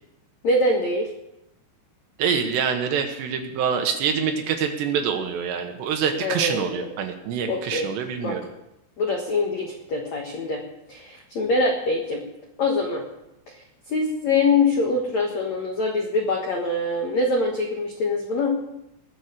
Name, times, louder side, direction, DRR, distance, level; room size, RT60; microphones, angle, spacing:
voice 1, 0.4-1.1 6.2-6.8 7.5-7.9 8.2-8.4 9.0-10.6 10.9-12.2 12.6-13.0 13.5-13.6 13.9-18.6, left 2 dB, 85° left, 1 dB, 1.5 m, -24 dB
voice 2, 2.2-8.4, right 7 dB, 70° right, 5 dB, 3.0 m, -25 dB
20.0 x 7.3 x 6.6 m, 0.87 s
omnidirectional pair, 5.7 m